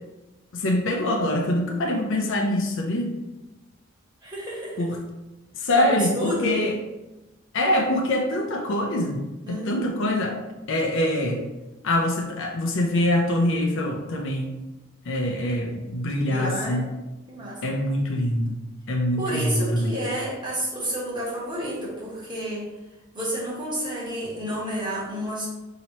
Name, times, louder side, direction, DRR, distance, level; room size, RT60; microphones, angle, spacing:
voice 1, 0.5-3.1 4.8-5.0 5.5-6.7 7.5-9.2 9.5-10.4 10.7-11.4 11.8-14.5 15.1-16.8 17.6-18.6 18.9-19.9, left 1 dB, 60° left, 2 dB, 0.5 m, -24 dB
voice 2, 4.2-4.9 5.7-6.6 9.5-9.8 16.2-16.8 17.3-17.6 19.2-22.7 23.1-25.5, equal, 20° right, -7 dB, 1.2 m, -30 dB
3.1 x 2.8 x 4.1 m, 1.0 s
head